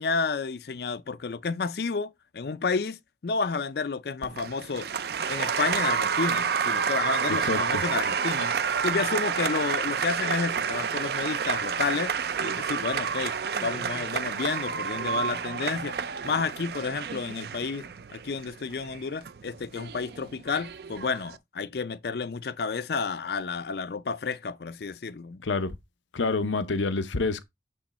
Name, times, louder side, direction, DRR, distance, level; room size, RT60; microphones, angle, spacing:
voice 1, 0.0-4.9 5.3-8.5 8.8-12.1 12.4-13.3 13.6-16.0 16.2-25.4, left 4 dB, 60° left, 0.4 m, -31 dB
Applause, 4.2-21.4, right 6 dB, 60° right, 0.4 m, -29 dB
voice 2, 7.3-7.8 25.4-25.7 26.1-27.4, left 3 dB, 90° left, 0.8 m, -27 dB
8.5 x 3.2 x 4.2 m
head